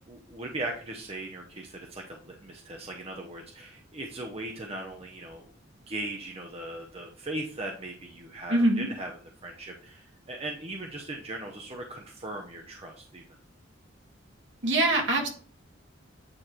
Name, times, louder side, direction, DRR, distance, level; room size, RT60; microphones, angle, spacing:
voice 1, 0.1-5.5 5.9-9.1 9.4-13.2, right 2 dB, 30° right, 1 dB, 0.7 m, -38 dB
voice 2, 8.5-8.9 14.6-15.3, right 1 dB, 65° right, 0 dB, 1.7 m, -23 dB
8.8 x 3.2 x 4.3 m, 0.43 s
head